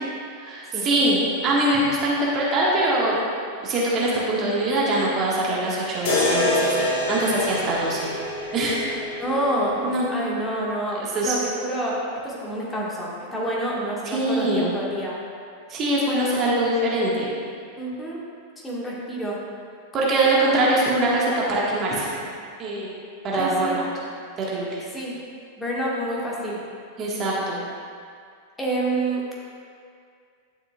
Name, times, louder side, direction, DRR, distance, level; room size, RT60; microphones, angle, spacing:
voice 1, 0.4-3.2 3.6-8.1 8.4-8.8 9.8-10.1 11.1-11.3 14.1-14.7 15.7-17.3 19.9-22.1 22.6-22.9 23.2-23.9 24.5-24.8 27.0-27.6, right 1 dB, 30° right, -5 dB, 1.6 m, -23 dB
sound 1, 6.0-10.1, left 1 dB, 50° left, 1.2 m, -26 dB
voice 2, 9.2-12.0 12.2-15.2 17.8-18.2 18.6-19.4 23.4-23.8 24.9-25.2 25.6-26.6 28.6-29.2, right 1 dB, 10° left, -5 dB, 1.7 m, -28 dB
11.0 x 6.7 x 2.4 m, 2.2 s
figure-of-eight pair, 90°, 0 cm